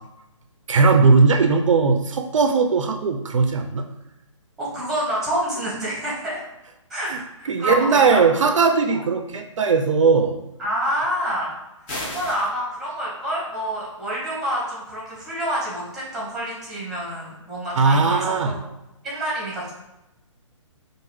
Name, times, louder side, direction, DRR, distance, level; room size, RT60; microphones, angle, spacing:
voice 1, 0.7-3.8 7.1-7.2 7.5-10.4 17.7-18.5, right 4 dB, 75° right, 5 dB, 0.5 m, -18 dB
voice 2, 4.6-6.4 6.9-8.2 8.9-9.0 10.6-11.5 12.0-18.7 19.0-19.7, equal, ahead, -6 dB, 1.3 m, -27 dB
sound 1, 11.9-12.5, left 1 dB, 25° left, 1.0 m, -31 dB
4.7 x 2.5 x 3.1 m, 0.93 s
hypercardioid pair, 145°, 17 cm